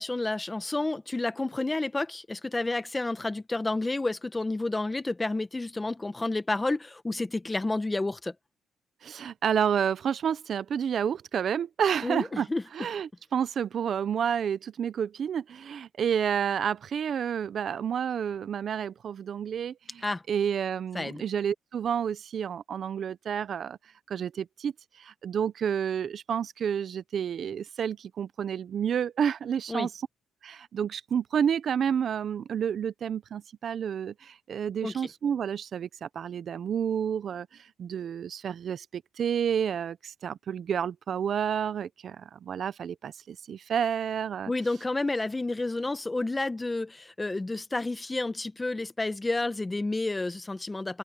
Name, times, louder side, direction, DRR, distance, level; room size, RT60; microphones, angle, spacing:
voice 1, 0.0-8.3 12.0-12.6 20.0-20.2 20.9-21.2 29.7-29.9 34.8-34.9 44.5-51.0, left 2 dB, 15° left, 1.3 m, -30 dB
voice 2, 9.0-12.5 12.7-23.8 24.1-29.9 30.4-44.5, right 8 dB, 55° right, 0.7 m, -30 dB
cardioid pair, 90°, 0 cm